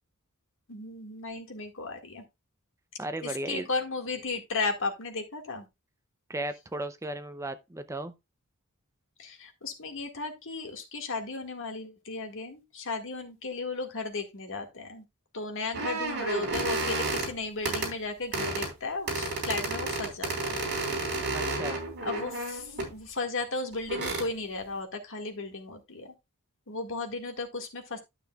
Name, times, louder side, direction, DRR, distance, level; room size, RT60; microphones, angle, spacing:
voice 1, 0.7-2.2 3.2-5.7 9.2-15.0 15.3-20.6 22.0-26.1 26.7-28.0, left 3 dB, 65° left, 1.9 m, -35 dB
voice 2, 3.0-3.7 6.3-8.1 21.3-21.8, right 1 dB, 15° right, 0.6 m, -35 dB
sound 1, 15.7-17.3 17.6-17.9 18.3-18.7 19.1-22.9 23.7-24.3, right 2 dB, 55° right, 3.9 m, -31 dB
12.0 x 6.8 x 2.4 m
head